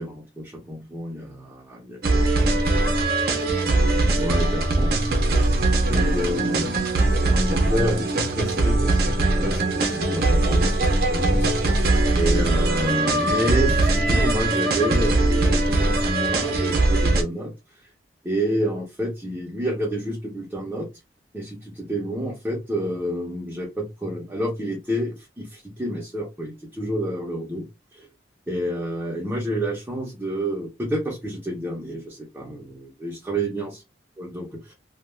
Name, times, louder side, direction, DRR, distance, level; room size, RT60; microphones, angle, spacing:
voice 1, 0.0-2.7 3.9-5.3 5.9-6.8 7.2-10.7 11.1-11.5 12.1-17.5 18.2-20.9 21.3-27.6 27.9-28.1 28.5-33.8 34.2-34.7, equal, 10° right, -3 dB, 0.7 m, -29 dB
sound 1, 2.0-17.2, right 2 dB, 55° right, 0.6 m, -21 dB
2.3 x 2.3 x 3.1 m, 0.23 s
head